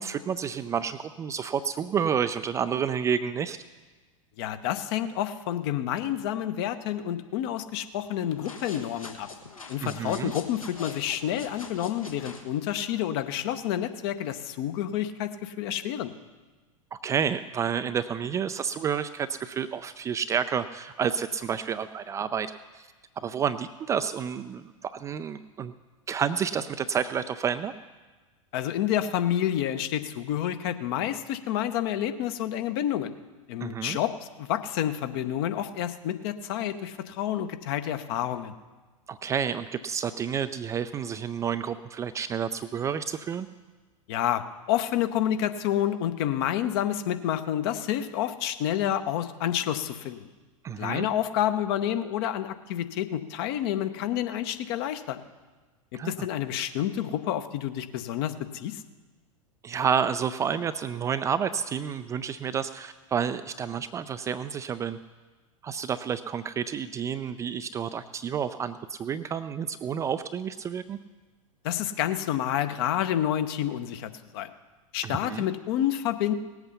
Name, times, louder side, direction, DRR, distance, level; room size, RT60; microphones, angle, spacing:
voice 1, 0.0-3.6 9.8-10.3 16.9-22.9 23.2-25.7 26.1-27.7 33.6-34.0 39.1-43.5 50.6-51.1 55.9-56.1 59.6-65.0 65.6-71.0 75.0-75.5, right 7 dB, 15° right, 10 dB, 0.4 m, -30 dB
voice 2, 4.4-9.3 9.7-16.1 28.5-33.1 33.5-38.5 44.1-50.3 50.8-55.2 56.1-58.8 71.6-74.5 74.9-76.3, left 11 dB, 45° left, 10 dB, 0.8 m, -29 dB
sound 1, 8.3-12.5, left 4 dB, 80° left, 1.6 m, -43 dB
18.0 x 8.2 x 5.6 m, 1.3 s
figure-of-eight pair, 90°, 17 cm